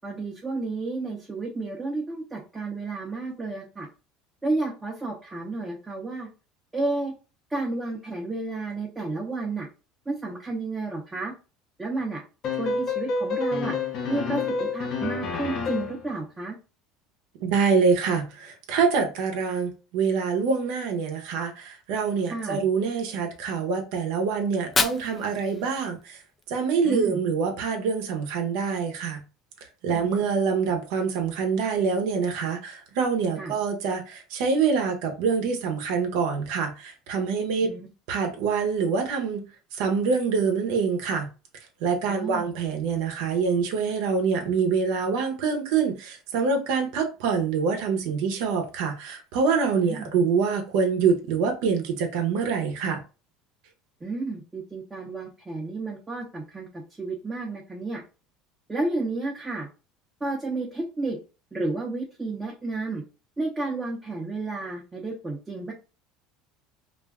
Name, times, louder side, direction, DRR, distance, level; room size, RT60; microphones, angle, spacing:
voice 1, 0.0-3.9 4.4-6.3 6.7-7.1 7.5-9.7 10.1-11.3 11.8-12.2 12.6-13.8 14.1-16.6 22.3-22.6 26.8-27.2 30.1-30.2 33.4-33.5 37.6-37.9 42.1-42.4 49.8-50.1 54.0-58.0 58.7-59.7 60.2-61.2 61.5-63.0 63.4-65.7, right 2 dB, 15° right, 0.6 m, -31 dB
sound 1, 12.4-16.1, left 4 dB, 50° left, 0.6 m, -28 dB
voice 2, 17.4-26.2 26.5-29.2 29.8-37.7 38.1-39.4 39.7-41.3 41.8-53.0, right 5 dB, 75° right, 0.7 m, -25 dB
Fire, 24.4-26.5, left 4 dB, 20° left, 0.3 m, -30 dB
2.4 x 2.2 x 3.4 m
supercardioid pair, 125°, 0 cm